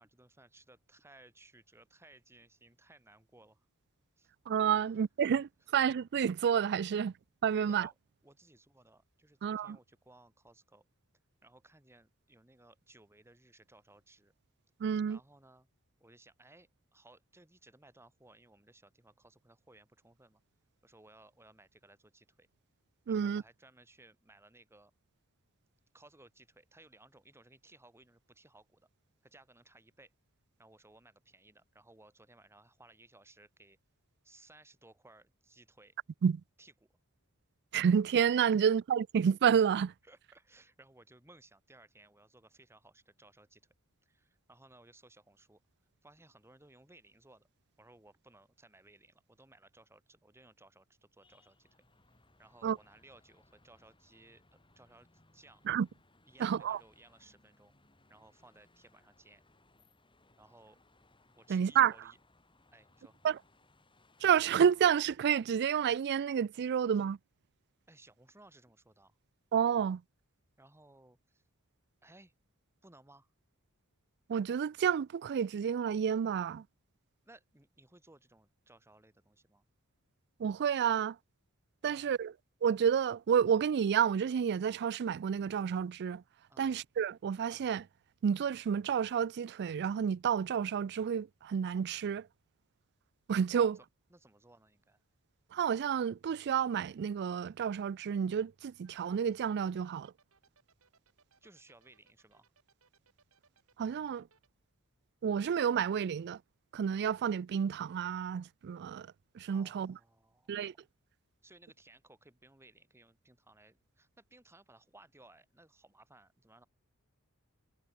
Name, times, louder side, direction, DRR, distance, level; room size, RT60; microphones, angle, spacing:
voice 1, 0.0-3.7 4.2-4.3 4.7-4.9 7.5-8.0 8.2-10.9 11.4-14.3 15.1-15.7 16.0-20.4 20.8-22.5 23.1-24.9 25.9-28.9 29.2-30.1 30.6-33.8 34.2-36.0 36.6-36.9 40.0-43.6 44.0-45.6 46.0-47.5 47.8-51.8 52.4-55.6 56.2-57.7 58.1-59.4 60.4-60.8 61.4-62.2 62.7-63.2 67.9-69.1 70.6-71.4 72.0-72.3 72.8-73.3 77.3-79.7 81.8-82.2 86.5-86.7 93.5-95.0 101.4-102.5 109.5-110.8 111.4-116.7, right 2 dB, 10° right, 1.8 m, -61 dB
voice 2, 4.5-7.1 7.4-7.9 9.4-9.8 14.8-15.2 23.1-23.4 36.2-36.4 37.7-39.9 52.6-52.8 55.7-55.9 56.4-56.8 61.5-61.9 63.2-63.4 64.2-67.2 69.5-70.0 74.3-76.6 80.4-81.2 81.8-82.3 82.6-86.2 86.6-87.9 88.2-92.3 93.3-93.8 95.5-100.1 103.8-104.3 105.2-106.4 106.7-109.1 109.3-110.0 110.5-110.7, right 8 dB, 50° right, 0.3 m, -30 dB
sound 1, 51.2-65.0, left 2 dB, 25° left, 8.0 m, -67 dB
sound 2, 98.8-104.5, right 5 dB, 70° right, 5.3 m, -68 dB
head